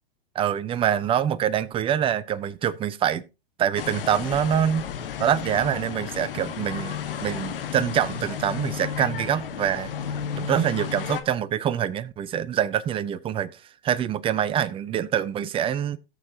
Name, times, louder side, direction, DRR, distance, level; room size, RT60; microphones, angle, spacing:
voice 1, 0.3-3.2 3.6-4.9 5.2-9.9 10.4-16.0, right 9 dB, 20° right, 0.6 m, -25 dB
sound 1, 3.7-11.2, left 8 dB, 70° left, 1.4 m, -33 dB
17.5 x 6.6 x 2.8 m
hypercardioid pair, 105°, 29 cm